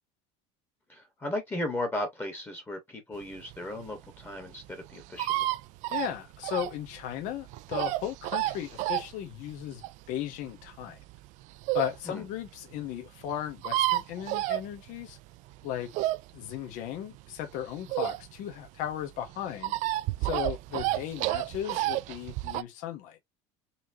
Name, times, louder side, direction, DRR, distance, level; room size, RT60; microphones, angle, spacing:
voice 1, 0.9-5.5 12.0-12.2, left 1 dB, 15° left, 1.3 m, -36 dB
sound 1, 3.4-12.0 12.5-12.6 12.8-12.9 13.0-13.1 13.3-15.2 15.5-18.5 18.9-22.6, right 17 dB, 60° right, 0.4 m, -31 dB
voice 2, 5.9-9.8 10.1-11.0 11.7-15.2 15.6-15.9 16.3-19.8 20.2-23.2, left 11 dB, 65° left, 0.9 m, -36 dB
4.2 x 3.1 x 2.7 m
cardioid pair, 140°, 15 cm